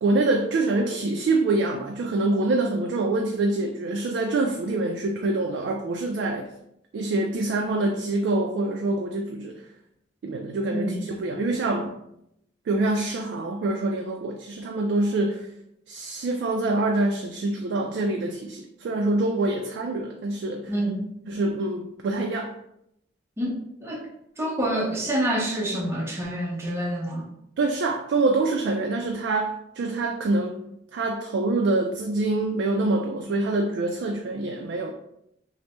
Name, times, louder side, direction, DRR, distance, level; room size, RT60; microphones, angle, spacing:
voice 1, 0.0-6.5 6.9-9.6 10.2-11.9 12.7-15.5 15.9-20.7 21.3-22.5 27.6-30.6 30.9-34.9, right 2 dB, 70° right, 2 dB, 0.3 m, -25 dB
voice 2, 10.7-11.0 20.7-21.1 23.4-24.1 24.4-27.3, right 1 dB, 15° right, -3 dB, 0.5 m, -27 dB
3.2 x 2.0 x 2.8 m, 0.78 s
head